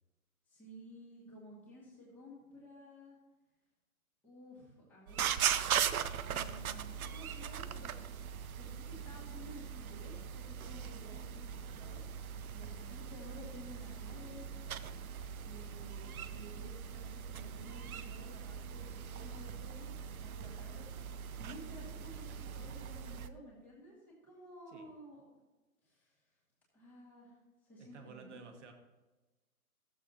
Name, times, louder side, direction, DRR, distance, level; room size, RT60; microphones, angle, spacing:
voice 1, 0.5-3.2 4.2-5.4 6.2-7.9 8.5-12.0 12.5-14.5 15.4-20.9 21.4-25.2 25.8-26.1 26.7-27.4 27.6-28.4, equal, 5° left, -8 dB, 2.1 m, -53 dB
sound 1, 5.1-23.3, right 8 dB, 70° right, 0.7 m, -40 dB
voice 2, 27.8-28.7, right 5 dB, 50° right, 4 dB, 1.5 m, -54 dB
14.5 x 7.6 x 2.9 m, 1.1 s
hypercardioid pair, 160°, 45 cm